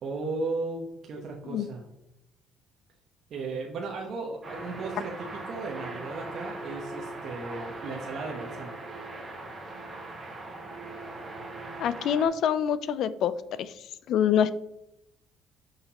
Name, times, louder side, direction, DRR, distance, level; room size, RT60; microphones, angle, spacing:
voice 1, 0.0-1.8 3.3-8.7, right 3 dB, 55° right, 0 dB, 0.9 m, -35 dB
sound 1, 4.4-12.3, right 2 dB, 20° right, 2.3 m, -40 dB
voice 2, 11.8-13.3 13.6-14.5, left 9 dB, 65° left, 14 dB, 0.4 m, -26 dB
6.5 x 5.1 x 2.9 m, 0.85 s
cardioid pair, 115°, 0 cm